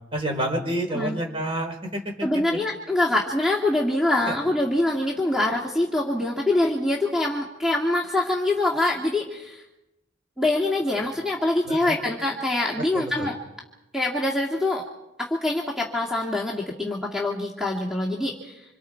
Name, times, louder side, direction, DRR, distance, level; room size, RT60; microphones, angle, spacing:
voice 1, 0.1-2.0 4.2-4.3 11.7-12.0 12.9-13.3, right 1 dB, 30° right, 2 dB, 4.8 m, -28 dB
voice 2, 2.2-9.6 10.4-13.3 13.9-14.8 15.2-18.6, left 2 dB, 5° right, -2 dB, 2.2 m, -24 dB
27.5 x 27.0 x 4.7 m, 0.96 s
head